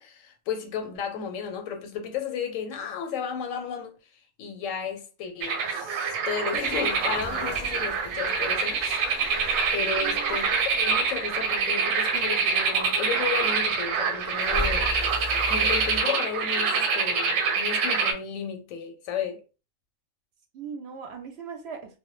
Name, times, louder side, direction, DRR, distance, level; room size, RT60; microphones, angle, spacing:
voice 1, 0.0-3.9 4.4-9.0 9.7-19.4, left 6 dB, 90° left, 1.0 m, -33 dB
sound 1, 5.4-18.1, right 5 dB, 90° right, 1.0 m, -26 dB
sound 2, 6.6-16.0, left 1 dB, 15° right, 0.4 m, -39 dB
voice 2, 10.0-10.5 20.5-22.0, right 6 dB, 65° right, 0.8 m, -39 dB
2.1 x 2.1 x 3.0 m
omnidirectional pair, 1.3 m